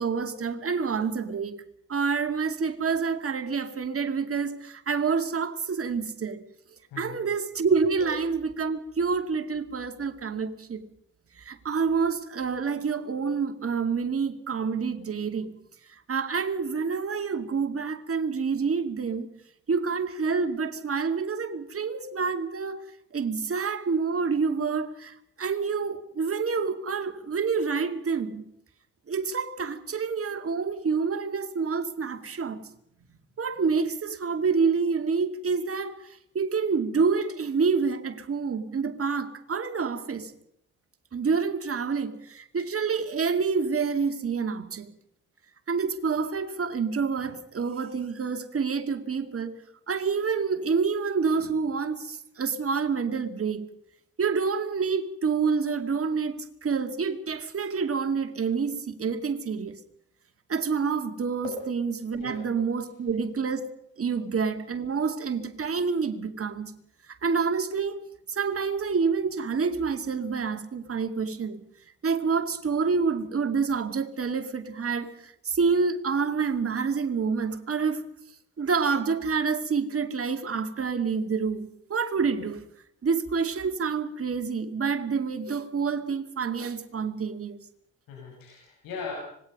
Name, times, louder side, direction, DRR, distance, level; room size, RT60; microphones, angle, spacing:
voice 1, 0.0-1.6 1.9-6.4 7.0-10.8 11.4-15.5 15.9-19.3 19.7-22.8 23.1-28.4 29.1-32.6 33.4-40.3 41.1-44.9 45.7-49.6 49.9-53.7 54.2-59.8 60.5-63.7 64.0-66.7 67.2-71.6 72.0-78.0 78.6-82.6 83.0-87.6, right 5 dB, 40° right, 2.4 m, -28 dB
voice 2, 6.9-7.2 62.2-62.4 88.1-89.1, left 5 dB, 65° left, 6.4 m, -39 dB
25.5 x 19.5 x 5.4 m
figure-of-eight pair, 45°, 37 cm